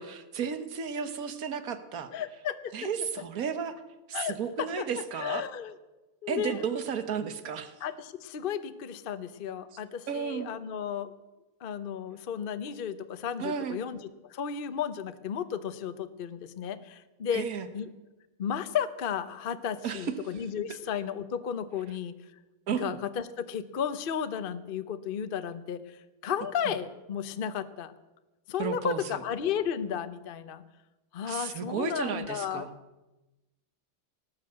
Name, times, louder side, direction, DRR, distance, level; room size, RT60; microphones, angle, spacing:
voice 1, 0.0-2.1 2.7-3.8 4.1-5.4 6.3-7.7 9.7-10.5 13.4-13.8 17.3-17.7 19.8-20.1 22.7-23.0 26.6-26.7 28.6-29.2 31.3-32.7, right 7 dB, 50° right, 10 dB, 1.3 m, -33 dB
voice 2, 2.1-2.7 4.1-4.4 4.8-4.9 5.2-5.7 6.2-6.6 7.8-11.1 11.6-14.0 14.3-17.5 17.7-17.9 18.4-22.1 22.8-27.9 28.5-30.6 31.1-32.7, left 8 dB, 75° left, 11 dB, 0.5 m, -33 dB
18.5 x 9.6 x 7.9 m, 1.1 s
omnidirectional pair, 2.4 m